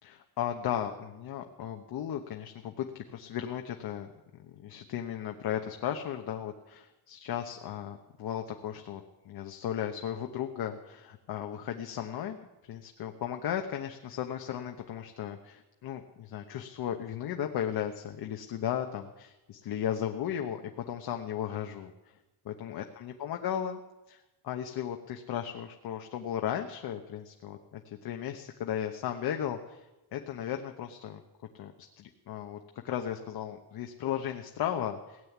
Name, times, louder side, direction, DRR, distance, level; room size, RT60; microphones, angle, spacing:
voice 1, 0.0-4.1 4.4-12.4 12.7-21.9 22.4-23.8 24.1-29.8 30.1-31.2 31.6-31.7 32.0-32.6 32.8-35.2, left 10 dB, 55° left, 5 dB, 1.1 m, -35 dB
17.5 x 7.8 x 9.4 m, 1.0 s
cardioid pair, 145°, 45 cm